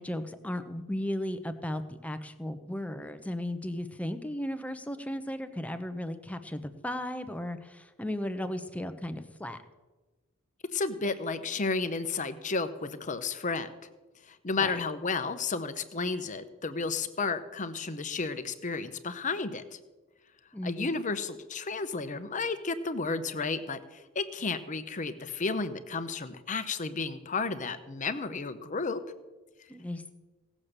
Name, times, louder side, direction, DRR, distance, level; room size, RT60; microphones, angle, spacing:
voice 1, 0.0-9.6 14.6-14.8 20.5-20.9 29.7-30.1, left 1 dB, 5° left, 8 dB, 0.8 m, -35 dB
voice 2, 10.7-13.7 14.3-19.6 20.6-29.0, left 4 dB, 40° left, 11 dB, 0.9 m, -32 dB
17.0 x 7.4 x 6.7 m, 1.2 s
head